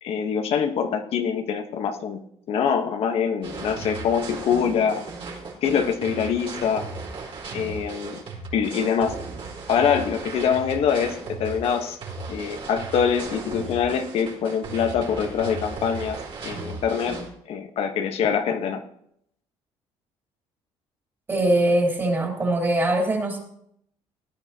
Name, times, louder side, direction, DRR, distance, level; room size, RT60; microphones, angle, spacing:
voice 1, 0.0-2.2 2.5-5.0 5.6-6.9 7.5-8.2 8.5-9.1 9.7-12.0 12.3-16.2 16.4-18.8, left 7 dB, 65° left, 6 dB, 1.2 m, -24 dB
sound 1, 3.4-17.3, right 3 dB, 55° right, 4.4 m, -36 dB
voice 2, 21.3-23.4, right 1 dB, 25° right, -1 dB, 3.5 m, -22 dB
18.0 x 11.0 x 2.9 m, 0.70 s
cardioid pair, 110°, 11 cm